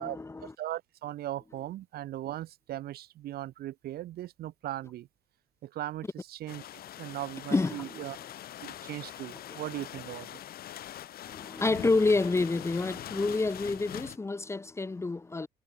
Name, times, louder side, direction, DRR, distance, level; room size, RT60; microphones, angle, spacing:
voice 1, 0.0-0.5 7.5-8.0 9.4-9.6 11.2-15.5, left 3 dB, 15° left, 0.8 m, -28 dB
voice 2, 0.6-5.1 5.6-6.6 7.0-8.2 8.6-10.3, right 14 dB, 65° right, 1.4 m, -38 dB
sound 1, 6.5-14.2, left 12 dB, 65° left, 3.2 m, -43 dB
cardioid pair, 110°, 17 cm